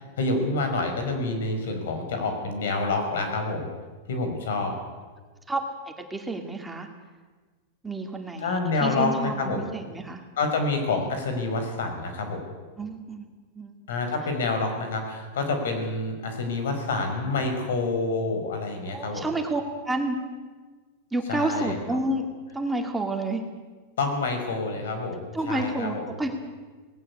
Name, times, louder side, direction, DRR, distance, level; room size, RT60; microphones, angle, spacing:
voice 1, 0.0-3.7 4.1-4.7 8.4-9.6 10.4-12.4 13.9-19.3 21.3-21.8 24.0-26.1, left 3 dB, 85° left, 5 dB, 5.3 m, -28 dB
voice 2, 5.5-6.9 7.8-10.2 12.8-13.3 13.6-13.8 18.8-20.2 21.1-22.3 22.5-23.4 25.3-26.3, right 2 dB, 5° right, 3 dB, 2.3 m, -30 dB
19.0 x 17.0 x 8.6 m, 1.4 s
supercardioid pair, 140°, 0 cm